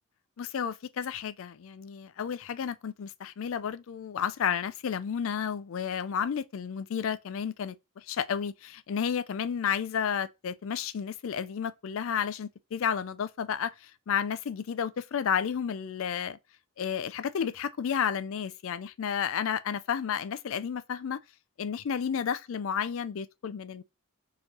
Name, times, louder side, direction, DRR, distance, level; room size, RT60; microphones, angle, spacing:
voice 1, 0.4-16.4 16.8-21.2 21.6-23.8, left 7 dB, 65° left, 0.4 m, -32 dB
4.4 x 3.1 x 3.8 m
head